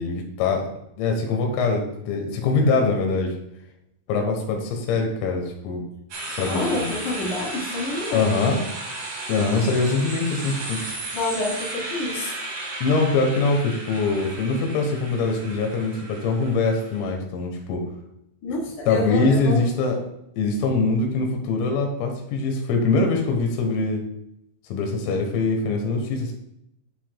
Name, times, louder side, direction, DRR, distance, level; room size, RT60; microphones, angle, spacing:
voice 1, 0.0-3.4 4.1-5.8 6.3-6.9 8.1-8.6 9.3-10.8 12.8-17.9 18.9-20.0 20.4-24.0 24.7-26.3, left 3 dB, 85° left, 2 dB, 3.9 m, -23 dB
sound 1, 6.1-17.1, right 2 dB, 70° right, 1.6 m, -34 dB
voice 2, 6.4-8.3 11.1-12.4 18.4-19.6, left 2 dB, 45° left, -4 dB, 3.4 m, -28 dB
11.5 x 7.6 x 2.2 m, 0.80 s
omnidirectional pair, 6.0 m